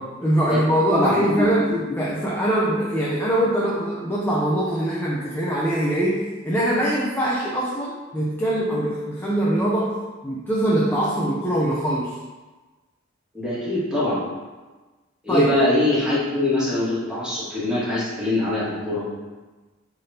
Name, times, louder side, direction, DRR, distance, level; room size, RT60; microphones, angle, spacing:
voice 1, 0.0-10.0 10.2-12.2 15.3-15.5, right 1 dB, 10° left, -5 dB, 0.6 m, -23 dB
voice 2, 0.9-1.8 13.3-14.2 15.2-19.1, left 1 dB, 5° right, -10 dB, 1.9 m, -23 dB
9.4 x 3.5 x 2.8 m, 1.2 s
head